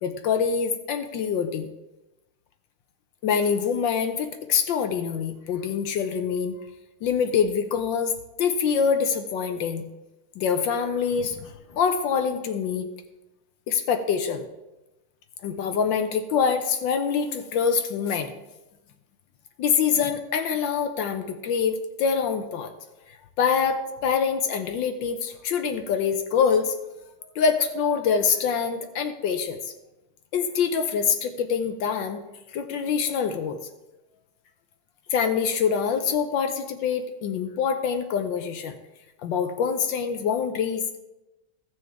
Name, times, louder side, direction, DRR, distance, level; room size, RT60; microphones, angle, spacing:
voice 1, 0.0-1.7 3.2-6.6 7.0-8.1 8.4-9.8 10.4-12.9 13.7-14.4 15.4-18.3 19.6-22.7 23.4-26.8 27.3-29.6 30.3-32.2 32.5-33.6 35.1-38.7 39.2-41.0, left 6 dB, 70° left, 8 dB, 1.3 m, -25 dB
15.5 x 6.3 x 3.5 m, 1.0 s
omnidirectional pair, 2.2 m